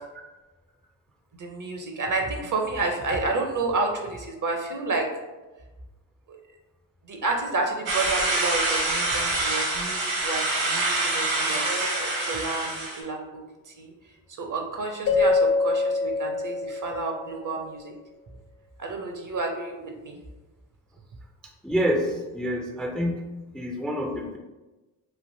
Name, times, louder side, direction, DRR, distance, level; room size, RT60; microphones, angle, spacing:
voice 1, 1.3-5.1 6.3-6.4 7.1-12.0 12.3-13.2 13.7-13.9 14.4-17.9 18.8-20.2, right 3 dB, 40° right, 2 dB, 0.6 m, -30 dB
sound 1, 7.9-13.0, right 2 dB, 75° right, 1.3 m, -26 dB
Keyboard (musical), 15.1-17.5, left 3 dB, 45° left, 0.7 m, -24 dB
voice 2, 21.6-23.2 23.5-24.4, equal, ahead, 2 dB, 0.4 m, -27 dB
3.2 x 2.4 x 2.6 m, 1.1 s
supercardioid pair, 45°, 50 cm